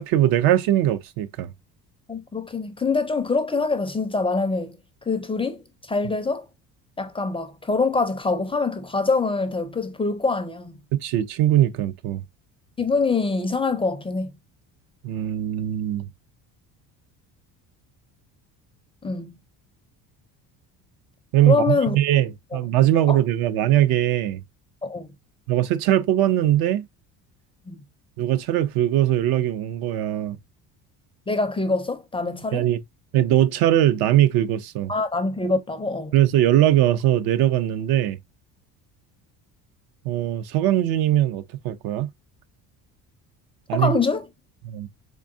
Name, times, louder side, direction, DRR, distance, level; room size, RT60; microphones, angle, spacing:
voice 1, 0.0-1.5 10.9-12.2 15.0-16.1 21.3-24.4 25.5-26.9 28.2-30.4 32.5-32.8 33.1-34.9 36.1-38.2 40.0-42.1 43.7-43.9 44.6-44.9, right 12 dB, 70° right, 0.5 m, -21 dB
voice 2, 2.1-4.8 5.1-6.5 7.0-10.8 12.8-14.3 19.0-19.4 21.5-22.0 22.5-22.6 23.1-23.2 24.8-25.1 27.7-27.8 31.3-32.7 34.9-36.1 43.7-44.3, left 3 dB, 15° left, 0.4 m, -24 dB
3.7 x 3.5 x 2.5 m
cardioid pair, 110°, 39 cm